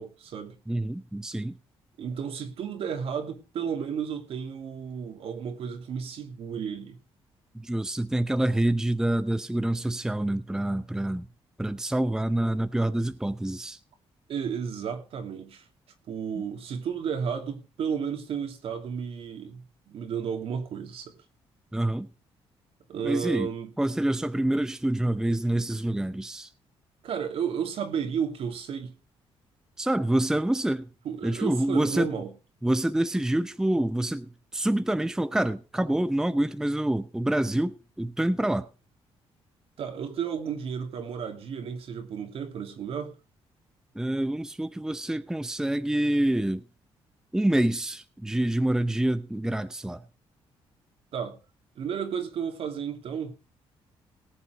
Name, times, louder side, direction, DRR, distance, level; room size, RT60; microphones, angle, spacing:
voice 1, 0.0-0.6 2.0-7.0 14.3-15.7 16.1-21.1 22.9-23.7 27.0-29.0 31.0-32.3 39.8-43.1 51.1-51.4 51.8-53.4, right 7 dB, 70° right, 2.8 m, -33 dB
voice 2, 0.7-1.5 7.5-11.3 11.6-13.8 21.7-22.1 23.0-23.5 23.8-26.5 29.8-30.9 31.2-32.2 32.6-38.7 43.9-46.6 47.3-50.0, right 1 dB, 5° right, 0.7 m, -27 dB
18.5 x 7.3 x 5.1 m
cardioid pair, 100°, 10 cm